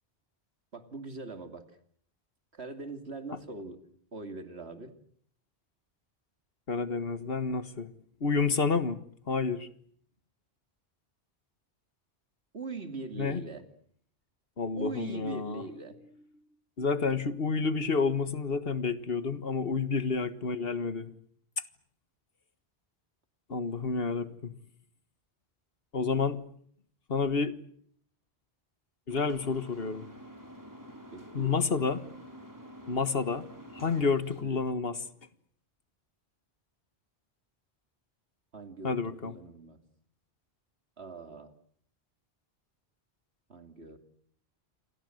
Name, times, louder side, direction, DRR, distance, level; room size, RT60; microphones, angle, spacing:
voice 1, 0.7-1.8 2.5-3.8 4.1-5.0 12.5-13.6 14.7-16.0 19.8-20.1 31.1-31.6 34.4-34.7 38.5-39.0 39.2-39.8 41.0-41.5 43.5-44.0, right 3 dB, 75° right, 8 dB, 3.1 m, -42 dB
voice 2, 6.7-7.9 8.2-9.0 9.3-9.7 13.2-13.4 14.6-15.6 16.8-21.1 23.5-24.5 25.9-26.4 27.1-27.5 29.1-30.1 31.3-32.0 32.9-33.5 33.7-35.0 38.8-39.3, left 4 dB, 60° left, 13 dB, 1.7 m, -29 dB
sound 1, 29.1-34.4, equal, 15° right, 4.6 m, -48 dB
28.5 x 23.0 x 7.9 m, 0.62 s
omnidirectional pair, 1.1 m